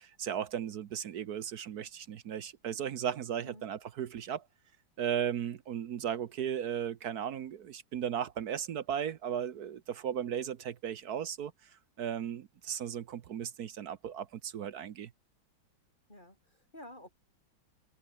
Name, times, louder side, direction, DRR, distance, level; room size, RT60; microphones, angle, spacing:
voice 1, 0.2-4.4 5.0-11.5 12.0-15.1, right 9 dB, 60° right, 1.2 m, -36 dB
voice 2, 16.1-17.1, left 1 dB, 20° left, 7.2 m, -51 dB
omnidirectional pair, 2.2 m